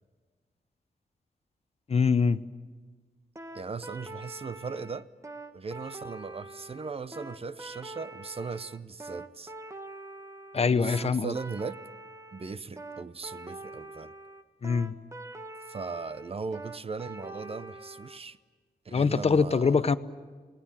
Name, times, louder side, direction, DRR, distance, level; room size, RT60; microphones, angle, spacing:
voice 1, 1.9-2.4 10.5-11.3 14.6-15.0 18.9-20.0, left 5 dB, 40° left, 12 dB, 0.8 m, -24 dB
sound 1, 3.3-18.2, right 2 dB, 20° right, 1.4 m, -44 dB
voice 2, 3.5-5.1 5.5-9.5 10.5-11.8 12.3-14.1 15.7-18.4 18.8-19.9, right 4 dB, 35° right, 14 dB, 0.7 m, -38 dB
29.0 x 19.5 x 8.9 m, 1.5 s
wide cardioid pair, 135°, 16 cm